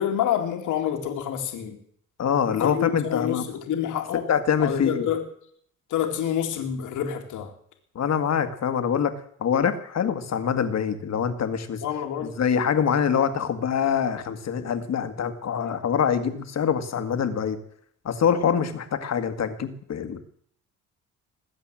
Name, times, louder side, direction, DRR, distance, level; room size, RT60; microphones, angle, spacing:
voice 1, 0.0-1.8 2.5-4.3 4.6-5.2 5.9-7.5 11.8-12.3, left 10 dB, 80° left, 5 dB, 2.3 m, -27 dB
voice 2, 2.2-3.4 4.3-5.1 8.0-9.1 9.4-11.8 12.2-17.6 18.1-20.2, left 7 dB, 60° left, 10 dB, 1.8 m, -24 dB
20.5 x 8.2 x 7.6 m, 0.64 s
cardioid pair, 90°, 30 cm